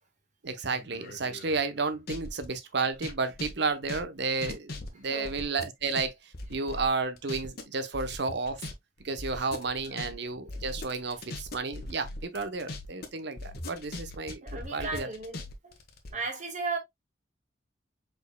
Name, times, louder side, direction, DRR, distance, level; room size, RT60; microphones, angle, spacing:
voice 1, 0.4-8.6 9.0-15.1, right 4 dB, 65° right, 0.8 m, -32 dB
sound 1, 0.7-2.5 2.9-6.1 6.3-7.6 7.9-8.7 9.0-13.1 13.4-16.1, left 2 dB, 55° left, 1.2 m, -40 dB
voice 2, 5.0-5.4 9.3-9.4 9.8-10.1 14.4-15.8 16.1-16.8, right 4 dB, 40° right, 1.5 m, -36 dB
5.1 x 4.5 x 2.2 m
head